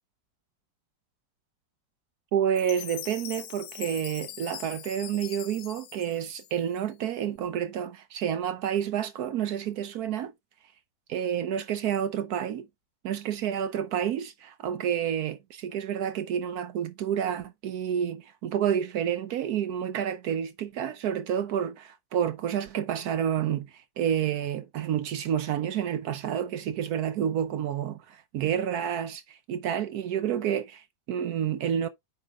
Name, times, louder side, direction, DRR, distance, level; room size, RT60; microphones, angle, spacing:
voice 1, 2.3-10.3 11.1-12.7 13.0-31.9, right 9 dB, 70° right, 1.0 m, -29 dB
Chime, 2.6-6.9, left 13 dB, 70° left, 1.1 m, -42 dB
9.2 x 3.7 x 3.7 m
omnidirectional pair, 2.0 m